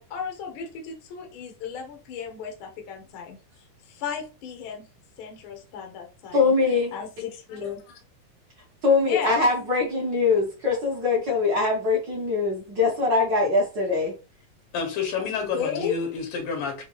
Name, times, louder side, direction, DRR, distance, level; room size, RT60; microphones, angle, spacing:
voice 1, 0.0-3.4 3.8-4.9 5.2-6.5 6.9-8.0 9.0-9.5 15.5-16.0, left 7 dB, 70° left, 1.2 m, -34 dB
voice 2, 6.3-6.9 7.6-7.7 8.8-14.1, left 3 dB, 55° right, 1.3 m, -22 dB
voice 3, 14.7-16.8, left 5 dB, 85° left, 2.8 m, -29 dB
5.9 x 2.4 x 3.0 m
omnidirectional pair, 3.8 m